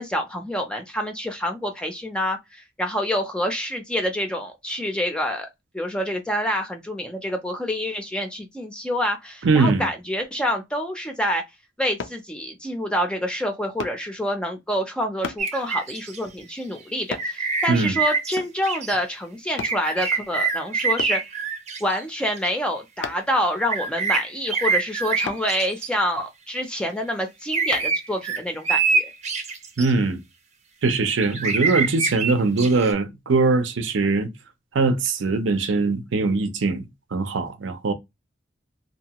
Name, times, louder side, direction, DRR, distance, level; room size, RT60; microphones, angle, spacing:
voice 1, 0.0-5.5 5.7-11.4 11.8-21.2 21.8-29.1, equal, 5° left, 0.4 m, -27 dB
voice 2, 9.4-9.9 17.7-18.0 29.8-30.2 30.8-34.3 34.7-36.8 37.1-37.9, right 3 dB, 85° right, 0.6 m, -21 dB
sound 1, 12.0-12.2 13.8-14.0 15.2-15.5 17.1-17.3 18.4-18.6 19.6-19.8 21.0-21.2 23.0-23.3 25.2-25.5 27.7-27.9 28.5-28.6, left 5 dB, 75° left, 0.4 m, -33 dB
sound 2, 15.4-16.2 17.2-18.4 18.6-19.0 19.6-22.5 23.7-25.9 27.5-29.9 30.9-32.9, right 4 dB, 35° right, 0.6 m, -25 dB
2.7 x 2.2 x 2.8 m
head